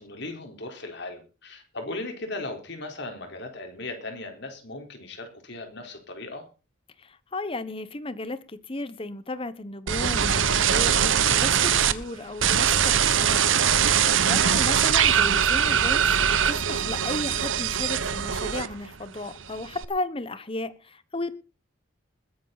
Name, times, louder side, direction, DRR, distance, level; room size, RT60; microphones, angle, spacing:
voice 1, 0.0-6.4 14.4-14.6, left 2 dB, 55° left, 4.2 m, -37 dB
voice 2, 7.0-13.4 13.8-16.1 16.4-21.4, left 2 dB, 25° left, 1.1 m, -34 dB
sound 1, 9.9-11.9 12.4-19.0 19.3-19.8, right 8 dB, 75° right, 1.0 m, -22 dB
21.0 x 10.0 x 4.1 m
head